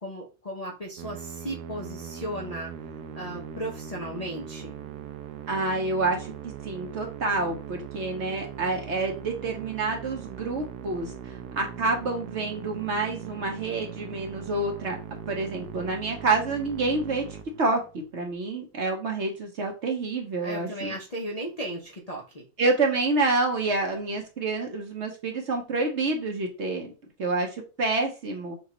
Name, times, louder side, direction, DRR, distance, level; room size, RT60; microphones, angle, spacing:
voice 1, 0.0-2.7 3.1-4.7 20.4-22.5, right 1 dB, 40° left, -3 dB, 0.5 m, -35 dB
Musical instrument, 1.0-18.1, right 8 dB, 80° right, 1.1 m, -40 dB
voice 2, 5.5-6.3 6.6-15.0 15.3-17.2 17.6-17.8 18.1-20.9 22.6-26.9 27.2-28.5, right 3 dB, 55° right, 2 dB, 1.0 m, -28 dB
6.4 x 2.4 x 2.9 m, 0.33 s
omnidirectional pair, 1.7 m